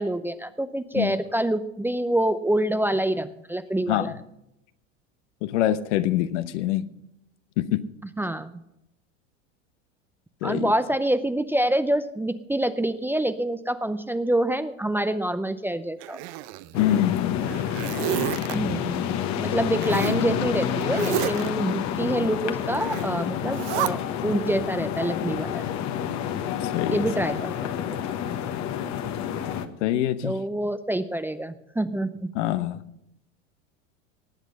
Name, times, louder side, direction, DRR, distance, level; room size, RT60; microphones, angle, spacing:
voice 1, 0.0-4.1 8.2-8.5 10.4-16.2 18.5-19.1 19.4-25.6 26.9-27.5 27.9-28.0 30.2-32.5, right 1 dB, 5° right, 11 dB, 0.6 m, -26 dB
voice 2, 5.4-6.8 7.6-7.8 10.4-10.7 16.7-17.3 19.9-20.3 26.6-27.0 29.8-30.3 32.3-32.8, left 13 dB, 65° left, 13 dB, 1.0 m, -25 dB
Zipper (clothing), 16.0-17.0 17.4-18.6 19.8-20.2 20.9-21.5 22.8-23.1 23.5-23.9, right 17 dB, 60° right, 0.7 m, -30 dB
sound 1, 16.7-29.7, left 9 dB, 45° left, 1.3 m, -29 dB
19.0 x 8.2 x 5.4 m, 0.85 s
hypercardioid pair, 90°, 38 cm